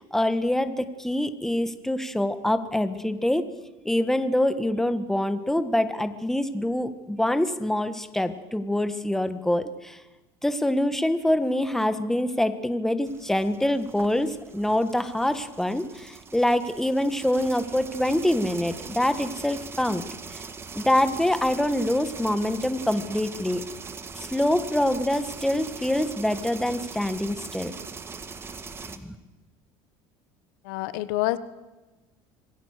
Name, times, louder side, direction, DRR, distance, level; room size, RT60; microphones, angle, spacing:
voice 1, 0.0-3.4 3.8-10.0 10.4-20.0 20.3-20.4 20.7-23.6 24.1-27.7 29.0-29.1, left 1 dB, 5° left, 11 dB, 1.6 m, -25 dB
sound 1, 13.1-29.0, right 5 dB, 25° right, 1.8 m, -41 dB
voice 2, 30.6-31.4, left 18 dB, 90° left, 15 dB, 1.2 m, -27 dB
26.5 x 21.5 x 6.7 m, 1.2 s
cardioid pair, 125°, 10 cm